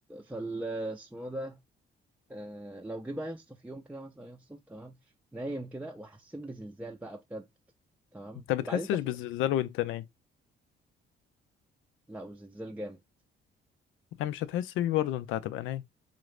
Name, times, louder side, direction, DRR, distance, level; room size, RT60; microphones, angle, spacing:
voice 1, 0.1-1.6 2.3-4.9 5.3-7.5 8.1-9.0 12.1-13.0, right 1 dB, 5° right, 0.5 m, -39 dB
voice 2, 8.5-10.0 14.2-15.8, left 13 dB, 90° left, 0.4 m, -30 dB
3.8 x 2.5 x 3.2 m
cardioid pair, 90°, 20 cm